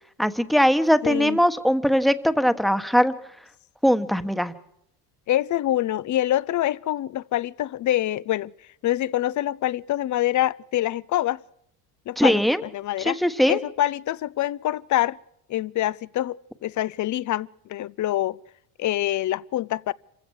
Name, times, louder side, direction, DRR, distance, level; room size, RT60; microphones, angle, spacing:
voice 1, 0.2-3.1 3.8-4.5 12.2-12.6 13.0-13.6, equal, ahead, 1.3 m, -20 dB
voice 2, 1.0-1.4 5.3-8.5 8.8-11.4 12.1-13.2 13.5-15.2 15.5-18.4 18.8-19.9, left 13 dB, 45° left, 0.7 m, -25 dB
26.5 x 16.0 x 6.5 m
supercardioid pair, 100°, 42 cm